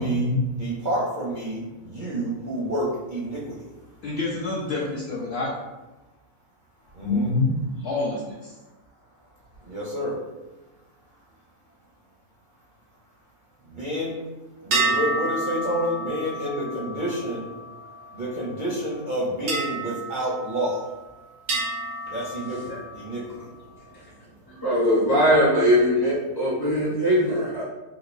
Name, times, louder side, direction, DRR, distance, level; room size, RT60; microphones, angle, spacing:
voice 1, 0.0-0.4 4.0-5.6 7.0-7.5 7.8-8.5, left 3 dB, 70° left, -4 dB, 0.6 m, -26 dB
voice 2, 0.6-3.6 6.9-7.3 9.6-10.2 13.7-14.1 14.6-17.5 18.1-20.9 22.1-23.4, right 1 dB, 55° right, -8 dB, 0.5 m, -29 dB
sound 1, 14.7-18.4 19.5-21.0 21.5-23.2, right 2 dB, 90° right, 1.3 m, -30 dB
voice 3, 24.5-27.6, equal, 20° left, -7 dB, 0.6 m, -20 dB
3.7 x 2.4 x 2.5 m, 1.1 s
omnidirectional pair, 1.5 m